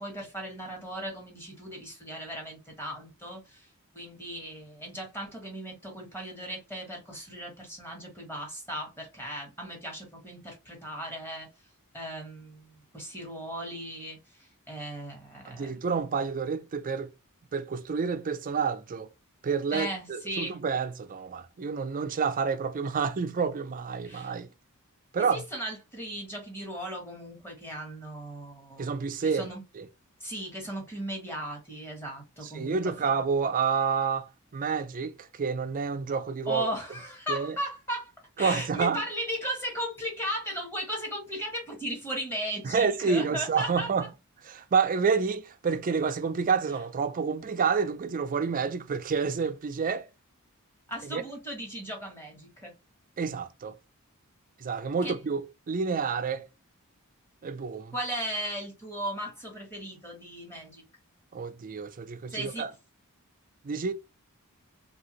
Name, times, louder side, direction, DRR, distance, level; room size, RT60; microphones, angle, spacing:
voice 1, 0.0-3.7 3.9-11.5 11.9-14.2 14.7-15.8 19.7-20.6 24.0-24.3 25.3-28.9 29.2-29.6 30.2-33.1 36.5-38.1 38.4-43.9 50.9-52.7 55.0-55.2 57.9-60.8 62.3-62.7, equal, 10° left, 1.4 m, -37 dB
voice 2, 15.5-17.1 17.5-19.1 19.4-24.5 25.1-25.4 28.8-29.5 29.8-29.9 32.5-36.7 37.3-37.6 38.4-39.0 42.6-44.1 44.4-50.1 51.0-51.2 53.2-53.7 54.6-56.5 57.4-57.9 61.3-62.7 63.6-63.9, right 5 dB, 40° right, 0.4 m, -29 dB
2.8 x 2.7 x 2.9 m
head